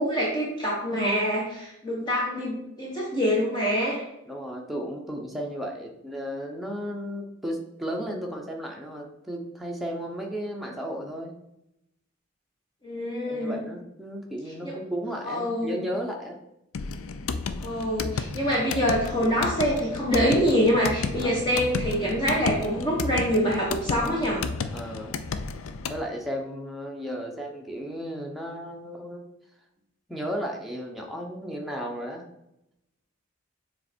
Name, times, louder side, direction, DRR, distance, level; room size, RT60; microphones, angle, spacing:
voice 1, 0.0-4.0 12.8-13.6 15.3-15.7 17.6-24.4, equal, 20° left, -4 dB, 1.1 m, -25 dB
voice 2, 4.3-11.3 13.3-16.4 21.2-21.4 24.7-25.1 25.9-29.3 30.1-32.2, equal, ahead, -1 dB, 0.8 m, -34 dB
sound 1, 16.7-26.0, left 4 dB, 90° left, 0.5 m, -32 dB
7.0 x 3.3 x 4.4 m, 0.84 s
head